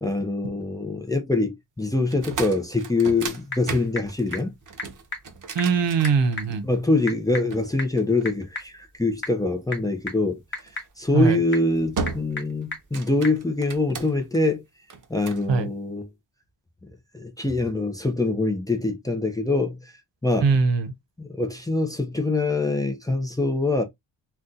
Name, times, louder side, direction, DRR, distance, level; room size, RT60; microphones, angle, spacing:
voice 1, 0.0-4.5 6.6-10.4 11.0-14.6 15.1-16.1 17.1-19.9 20.2-20.5 21.2-23.8, left 2 dB, 10° left, 0.5 m, -24 dB
sound 1, 2.0-6.8 7.5-8.8 10.6-10.8 11.3-11.6 12.0-12.5 12.8-14.4 14.9-15.5, right 4 dB, 45° right, 0.7 m, -35 dB
Typing / Telephone, 2.9-13.4, left 2 dB, 25° left, 1.4 m, -39 dB
voice 2, 5.5-6.6 11.1-11.4 15.5-15.7 20.4-20.9, right 5 dB, 80° right, 0.7 m, -21 dB
2.7 x 2.2 x 3.6 m
wide cardioid pair, 150°, 43 cm